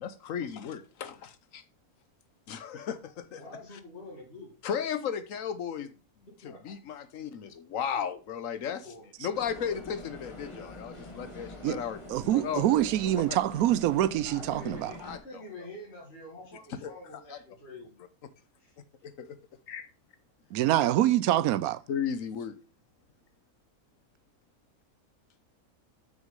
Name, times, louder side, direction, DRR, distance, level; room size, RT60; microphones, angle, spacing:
voice 1, 0.0-1.6 2.5-3.4 4.6-5.9 6.4-8.9 9.2-12.0 12.3-12.6 13.0-13.4 15.0-15.4 16.7-17.4 19.0-19.4 19.7-19.9 21.3-21.5 21.9-22.6, left 8 dB, 65° left, 1.2 m, -35 dB
voice 2, 3.4-4.5 6.4-6.7 8.8-9.1 14.2-18.0 18.6-18.7, left 2 dB, 45° left, 2.4 m, -46 dB
sound 1, 9.3-15.2, left 2 dB, 20° left, 1.3 m, -45 dB
voice 3, 12.1-14.9 20.5-21.8, right 13 dB, 80° right, 1.1 m, -25 dB
6.4 x 6.2 x 5.2 m
omnidirectional pair, 1.5 m